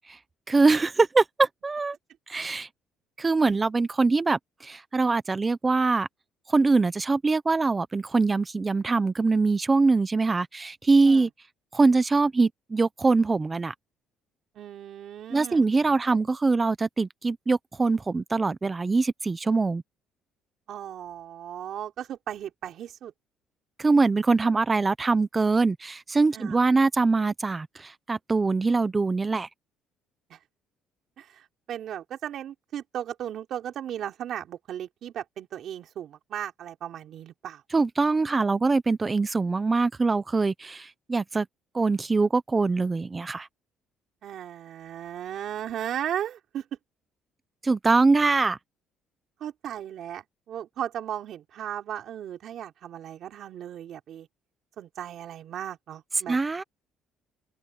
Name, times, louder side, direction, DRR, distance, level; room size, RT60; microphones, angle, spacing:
voice 1, 0.5-2.0 2.3-2.7 3.2-6.1 6.5-11.3 11.7-13.7 15.3-19.8 23.8-29.5 37.7-41.5 41.7-43.5 47.6-48.6 56.3-56.6, right 3 dB, 15° right, 0.7 m, -23 dB
voice 2, 14.5-15.6 20.7-23.1 26.3-26.6 30.3-30.4 31.2-37.6 44.2-46.6 49.4-54.3 54.8-56.4, right 10 dB, 50° right, 4.1 m, -36 dB
open air
cardioid pair, 165°, 0 cm